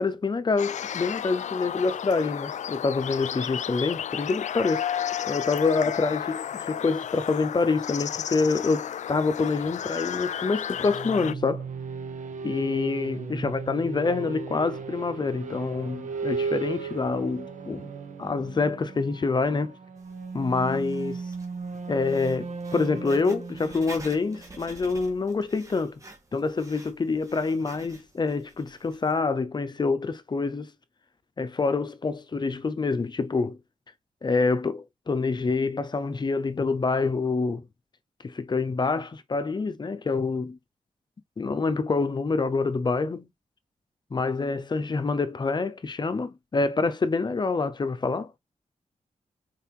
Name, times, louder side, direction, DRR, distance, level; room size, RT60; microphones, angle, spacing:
voice 1, 0.0-4.9 5.3-11.6 12.4-17.9 18.2-19.7 20.3-21.2 21.9-26.0 26.3-30.7 31.4-33.6 34.2-37.6 38.2-40.6 41.4-43.3 44.1-48.3, left 4 dB, 35° left, 0.8 m, -26 dB
sound 1, 0.6-11.3, left 9 dB, 70° left, 0.4 m, -33 dB
sound 2, 10.7-25.4, right 4 dB, 75° right, 1.4 m, -36 dB
Writing, 20.0-29.2, right 2 dB, 25° right, 1.9 m, -49 dB
5.6 x 4.6 x 4.6 m
wide cardioid pair, 145°, 13 cm